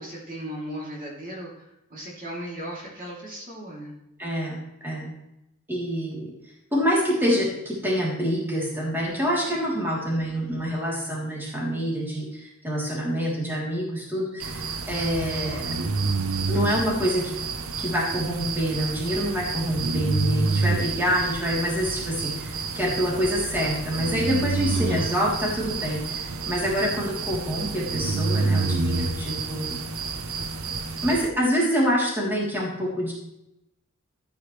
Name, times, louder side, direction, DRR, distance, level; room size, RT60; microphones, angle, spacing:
voice 1, 0.0-3.9 24.7-25.0, equal, 40° right, -4 dB, 3.1 m, -36 dB
voice 2, 4.2-5.1 5.7-6.3 6.7-15.6 16.5-17.3 17.8-29.8 31.0-33.1, equal, 10° right, -5 dB, 3.3 m, -26 dB
sound 1, 14.4-31.3, right 4 dB, 85° right, 0.9 m, -29 dB
13.5 x 9.4 x 3.3 m, 0.86 s
head